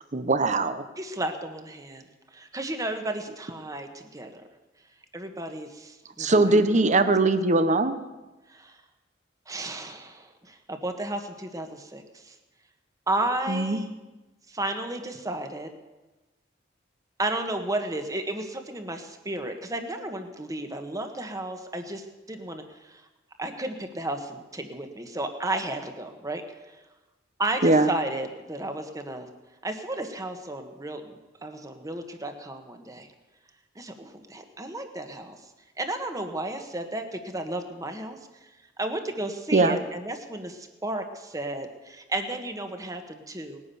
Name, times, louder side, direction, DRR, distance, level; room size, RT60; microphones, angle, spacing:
voice 1, 0.1-0.8 6.2-8.0 13.5-13.8 27.6-27.9 39.5-39.8, right 2 dB, 40° right, 11 dB, 1.0 m, -21 dB
voice 2, 1.0-2.0 2.3-4.4 5.1-6.5 8.5-8.7 9.5-12.3 13.1-13.9 14.5-15.7 17.2-23.0 23.4-26.4 27.4-29.3 29.6-33.1 33.7-35.4 35.8-38.2 38.8-43.6, right 1 dB, 20° right, 6 dB, 1.5 m, -33 dB
19.5 x 9.8 x 7.1 m, 1.1 s
head